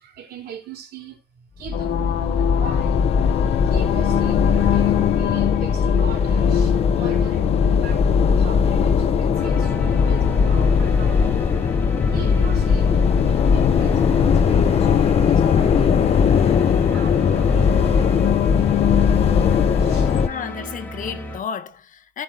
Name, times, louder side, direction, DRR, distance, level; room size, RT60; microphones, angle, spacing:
voice 1, 0.0-3.1 3.6-11.4 12.1-19.3 19.8-20.1, right 9 dB, 70° right, 3.4 m, -40 dB
sound 1, 1.6-20.3, left 6 dB, 35° left, 0.7 m, -19 dB
sound 2, 1.7-20.2, left 15 dB, 80° left, 0.9 m, -27 dB
sound 3, 9.3-21.4, left 2 dB, 10° left, 3.8 m, -32 dB
voice 2, 20.0-22.2, left 7 dB, 50° left, 1.4 m, -32 dB
16.0 x 5.5 x 2.6 m
cardioid pair, 110°, 17 cm